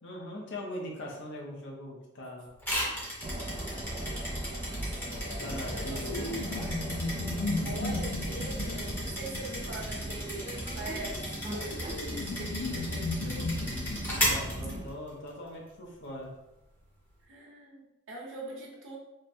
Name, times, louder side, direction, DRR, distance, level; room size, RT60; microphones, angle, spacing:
voice 1, 0.0-2.5 5.4-6.4 7.5-7.8 14.2-16.4, left 1 dB, 60° left, -1 dB, 0.8 m, -41 dB
sound 1, 2.6-15.3, equal, 10° left, 1.0 m, -36 dB
sound 2, 3.2-14.9, right 1 dB, 25° right, 0.4 m, -38 dB
sound 3, 5.0-10.1 11.0-14.8, left 2 dB, 90° left, 0.5 m, -36 dB
voice 2, 5.5-6.8 7.6-11.8 12.1-13.5 17.3-19.0, right 2 dB, 65° right, -3 dB, 1.0 m, -43 dB
3.2 x 2.2 x 4.2 m, 0.92 s
head